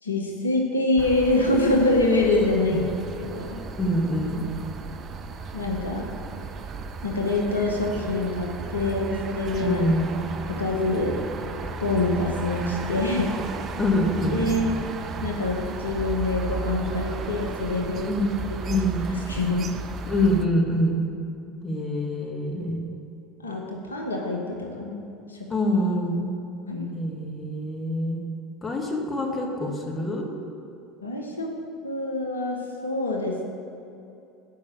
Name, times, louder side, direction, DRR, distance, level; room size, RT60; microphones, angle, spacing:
voice 1, 0.0-3.6 5.5-6.1 7.0-9.8 10.6-11.1 11.8-13.4 14.3-14.8 15.2-18.2 18.7-18.8 19.1-19.8 23.4-25.5 26.7-26.9 31.0-31.5 31.8-32.6 32.8-33.4, left 2 dB, 85° left, 0 dB, 0.9 m, -25 dB
Silent Part of Town - Starting to Rain, 1.0-20.5, right 4 dB, 40° right, 0.5 m, -35 dB
voice 2, 3.8-4.4 9.6-10.1 13.8-14.5 18.1-19.0 20.1-21.0 21.6-22.8 25.5-26.3 26.9-28.2 28.6-30.3, left 1 dB, 20° left, 1 dB, 1.5 m, -25 dB
6.6 x 5.2 x 7.0 m, 2.7 s
figure-of-eight pair, 75°, 0 cm